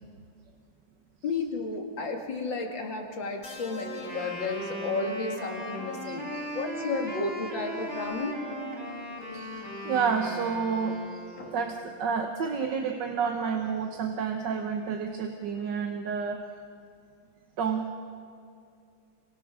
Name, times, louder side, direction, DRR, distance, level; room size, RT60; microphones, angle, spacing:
voice 1, 1.2-8.4 11.4-11.5, left 3 dB, 70° left, 2 dB, 3.0 m, -33 dB
sound 1, 3.4-5.7 7.0-7.2, left 2 dB, 40° left, 2.3 m, -45 dB
Wind instrument woodwind instrument, 4.0-11.7, equal, 40° right, 5.1 m, -38 dB
voice 2, 6.0-6.5 6.8-6.9 9.3-11.2 11.5-16.5 17.6-17.9, right 6 dB, 65° right, 3 dB, 1.8 m, -30 dB
28.0 x 24.5 x 6.4 m, 2.4 s
omnidirectional pair, 2.1 m